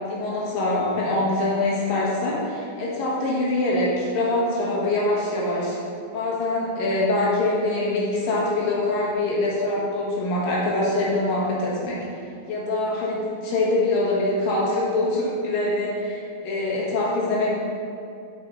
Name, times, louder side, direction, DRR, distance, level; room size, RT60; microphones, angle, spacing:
voice 1, 0.1-5.8 6.1-12.0 12.5-17.6, left 2 dB, 65° left, -5 dB, 2.8 m, -24 dB
7.0 x 6.2 x 4.1 m, 2.5 s
omnidirectional pair, 4.5 m